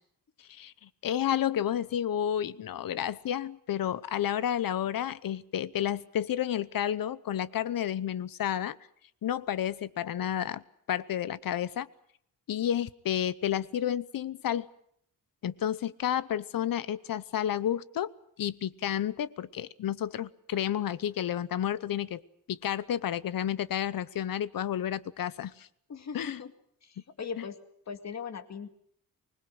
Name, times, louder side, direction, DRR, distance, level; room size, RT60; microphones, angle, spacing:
voice 1, 0.5-8.8 9.2-10.6 10.9-11.9 12.5-14.7 15.4-18.1 18.4-22.2 22.5-25.7 26.1-26.4, left 10 dB, 70° left, 17 dB, 0.9 m, -31 dB
voice 2, 25.9-26.5 26.8-27.6 27.9-28.7, left 6 dB, 50° left, 8 dB, 2.1 m, -39 dB
25.0 x 20.5 x 7.9 m, 0.67 s
wide cardioid pair, 175°, 36 cm